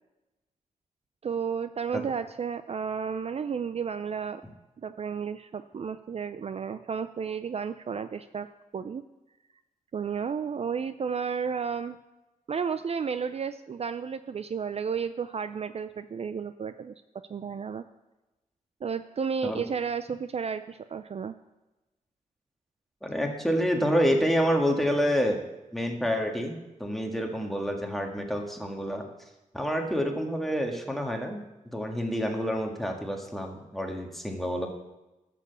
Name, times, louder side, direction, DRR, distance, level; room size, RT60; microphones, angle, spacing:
voice 1, 1.2-4.4 4.8-8.5 8.7-9.0 9.9-12.0 12.5-17.8 18.8-21.3, right 6 dB, 45° right, 11 dB, 0.4 m, -32 dB
voice 2, 23.0-25.4 25.7-29.0 29.5-31.5 31.7-34.7, equal, ahead, 2 dB, 1.8 m, -28 dB
13.0 x 6.9 x 6.9 m, 1.0 s
wide cardioid pair, 105°, 14 cm